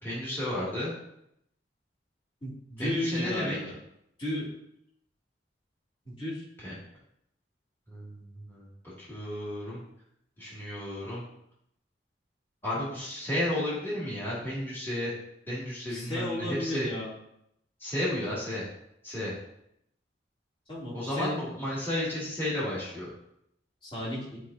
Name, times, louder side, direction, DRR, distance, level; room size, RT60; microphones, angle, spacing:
voice 1, 0.0-0.9 2.8-3.6 6.6-6.7 7.9-8.7 9.0-9.8 10.4-11.2 12.6-15.1 15.5-16.9 17.8-18.7 19.0-19.3 20.9-23.1, left 1 dB, 10° left, -9 dB, 2.4 m, -32 dB
voice 2, 2.4-3.7 4.2-4.5 6.0-6.4 15.9-17.1 20.7-21.4 23.8-24.4, left 1 dB, 30° left, -9 dB, 2.9 m, -34 dB
10.5 x 5.0 x 2.8 m, 0.76 s
head